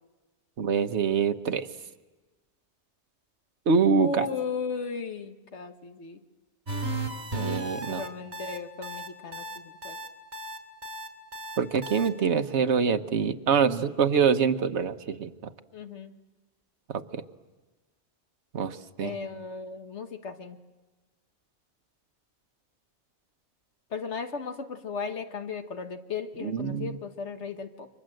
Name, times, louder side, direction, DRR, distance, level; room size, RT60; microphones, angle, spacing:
voice 1, 0.6-1.7 3.7-4.2 7.3-8.0 11.6-15.3 16.9-17.2 18.5-19.1 26.4-27.0, right 6 dB, 80° right, 9 dB, 1.3 m, -25 dB
voice 2, 4.0-6.2 7.9-10.0 15.7-16.1 19.0-20.6 23.9-27.9, left 5 dB, 85° left, 7 dB, 1.7 m, -36 dB
sound 1, 6.7-12.1, right 1 dB, 65° right, 3.7 m, -35 dB
30.0 x 24.0 x 7.8 m, 1.3 s
omnidirectional pair, 1.1 m